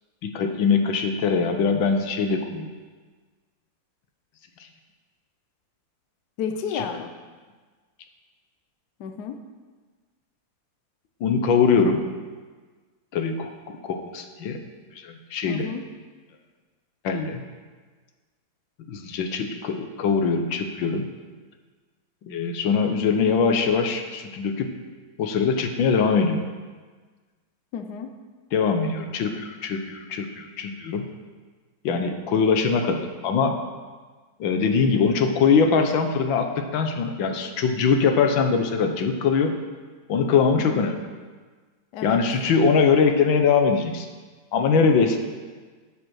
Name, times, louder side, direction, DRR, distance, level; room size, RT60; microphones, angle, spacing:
voice 1, 0.2-2.7 6.7-6.8 11.2-12.0 13.1-14.6 15.0-15.7 17.0-17.4 18.9-21.1 22.2-24.7 25.2-26.4 28.5-31.1 31.8-33.6 34.4-39.6 40.1-41.0 42.0-44.1 44.5-45.2, left 5 dB, 85° left, 5 dB, 1.7 m, -22 dB
voice 2, 6.4-7.1 9.0-9.4 15.5-15.8 27.7-28.1 40.6-40.8 41.9-42.2, left 7 dB, 65° left, 6 dB, 1.2 m, -31 dB
8.8 x 7.9 x 6.4 m, 1.4 s
omnidirectional pair, 2.1 m